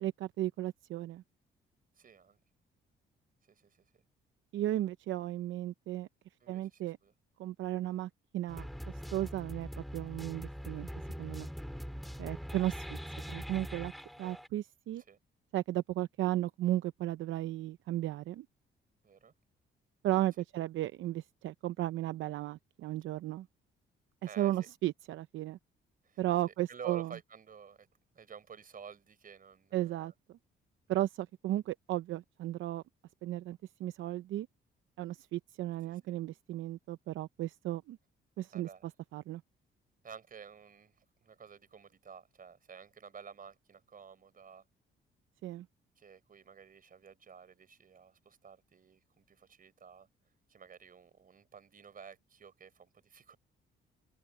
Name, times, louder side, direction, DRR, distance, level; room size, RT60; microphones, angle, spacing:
voice 1, 0.0-1.2 4.5-6.1 6.5-7.0 7.4-8.7 9.1-10.9 11.2-11.5 12.2-13.0 13.3-13.9 14.2-15.0 15.5-18.5 20.0-23.5 24.4-25.6 26.2-27.1 29.7-30.1 30.9-32.8 33.2-34.5 35.0-38.0 38.4-38.7 39.1-39.4 45.4-45.7, right 14 dB, 75° right, 0.7 m, -35 dB
voice 2, 1.9-2.4 3.5-4.0 6.4-7.1 15.0-15.2 19.0-19.3 24.2-24.7 26.0-26.2 26.5-27.9 28.1-30.1 35.9-36.0 38.5-38.8 40.0-44.6 46.0-50.1 50.5-53.4, right 6 dB, 45° right, 4.7 m, -52 dB
sound 1, 8.5-14.5, equal, ahead, 3.3 m, -42 dB
open air
cardioid pair, 90°, 20 cm